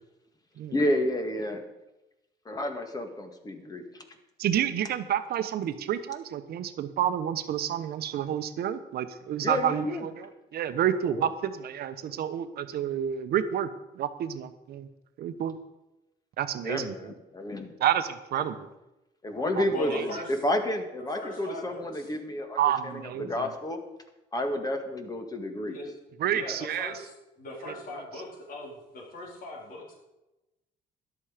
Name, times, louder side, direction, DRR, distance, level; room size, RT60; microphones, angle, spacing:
voice 1, 0.7-1.6 2.5-4.0 9.4-10.1 11.1-11.3 16.6-17.7 18.4-18.5 19.2-20.1 20.4-22.6 22.9-23.8 24.3-25.8, left 1 dB, 20° left, 6 dB, 1.8 m, -30 dB
voice 2, 4.4-13.7 13.9-14.9 15.2-15.6 16.4-17.1 17.8-18.7 19.6-19.7 19.9-20.0 22.6-23.5 26.2-26.9 27.7-27.8, right 10 dB, 60° right, 10 dB, 1.1 m, -29 dB
voice 3, 19.7-20.3 21.1-22.1 25.6-25.9 26.3-27.1 27.4-30.0, left 1 dB, 50° left, -2 dB, 4.3 m, -39 dB
13.5 x 11.0 x 5.1 m, 0.96 s
cardioid pair, 130°, 18 cm